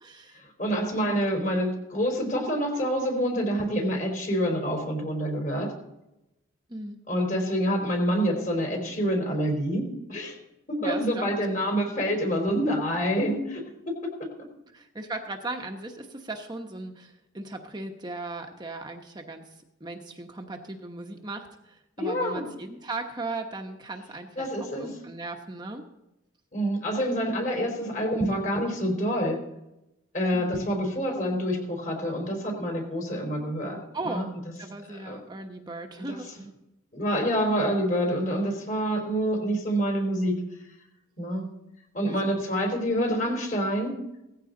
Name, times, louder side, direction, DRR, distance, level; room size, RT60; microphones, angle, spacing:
voice 1, 0.0-0.4 0.9-1.2 6.7-7.0 10.8-11.5 14.7-25.8 30.3-30.8 33.9-34.3 34.6-36.4 42.1-42.4, right 2 dB, 20° right, 3 dB, 1.0 m, -37 dB
voice 2, 0.6-5.7 7.1-10.3 10.7-14.1 22.0-22.4 24.4-24.9 26.5-29.4 30.1-33.8 34.0-34.2 35.1-35.2 36.1-36.5 36.9-40.4 41.2-41.5 41.9-44.0, equal, 40° left, 3 dB, 4.0 m, -27 dB
17.5 x 14.5 x 3.9 m, 0.91 s
head